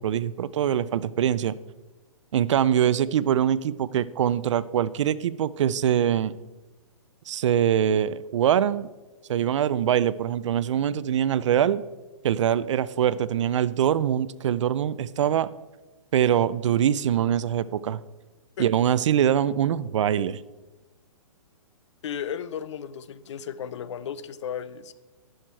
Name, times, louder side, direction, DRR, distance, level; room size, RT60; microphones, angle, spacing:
voice 1, 0.0-1.5 2.3-6.3 7.3-8.9 9.3-11.8 12.2-15.5 16.1-18.0 18.6-20.4, right 10 dB, 60° right, 18 dB, 0.4 m, -23 dB
voice 2, 22.0-24.9, left 8 dB, 55° left, 15 dB, 0.6 m, -34 dB
11.0 x 6.4 x 4.5 m, 1.2 s
hypercardioid pair, 160°, 18 cm